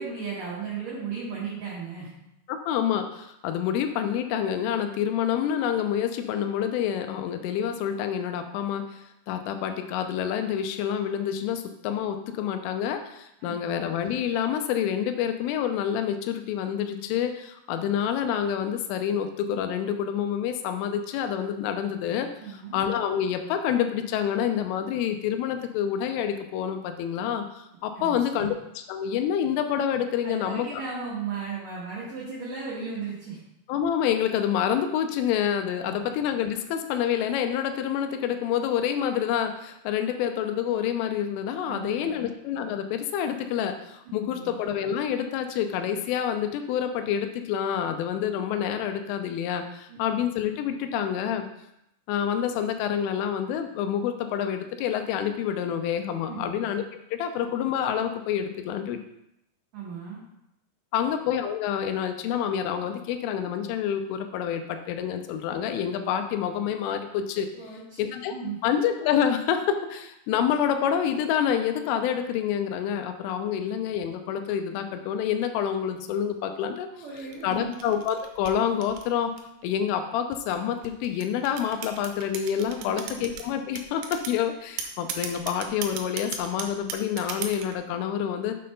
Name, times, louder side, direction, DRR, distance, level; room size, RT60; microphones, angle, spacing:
voice 1, 0.0-2.1 13.4-13.7 22.4-22.8 27.9-28.5 30.2-33.4 35.8-36.1 41.7-42.2 44.0-44.5 49.9-50.0 56.3-56.5 59.7-60.2 67.5-68.6 76.9-77.7 82.8-83.3, right 5 dB, 60° right, -7 dB, 2.3 m, -36 dB
voice 2, 2.5-9.0 9.3-22.3 22.7-27.5 27.8-28.6 28.9-30.8 33.7-51.5 52.1-56.8 57.1-59.0 60.9-67.5 68.0-68.3 68.6-76.9 77.4-79.3 79.6-88.6, left 9 dB, 90° left, 7 dB, 3.2 m, -27 dB
sound 1, 77.2-79.6 80.3-83.4 83.8-84.4 84.8-87.8, right 7 dB, 80° right, 3.0 m, -36 dB
7.5 x 4.2 x 5.3 m, 0.82 s
omnidirectional pair, 5.6 m